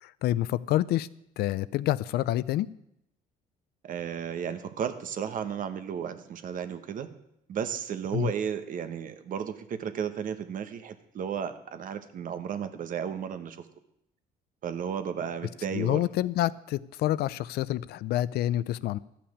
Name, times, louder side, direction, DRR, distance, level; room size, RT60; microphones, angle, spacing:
voice 1, 0.0-1.1 1.4-2.7 8.1-8.3 15.7-19.0, left 14 dB, 70° left, 18 dB, 0.4 m, -28 dB
voice 2, 3.8-7.1 7.5-13.7 14.6-16.0, right 8 dB, 55° right, 10 dB, 1.1 m, -34 dB
12.5 x 5.8 x 8.5 m, 0.80 s
cardioid pair, 110°, 17 cm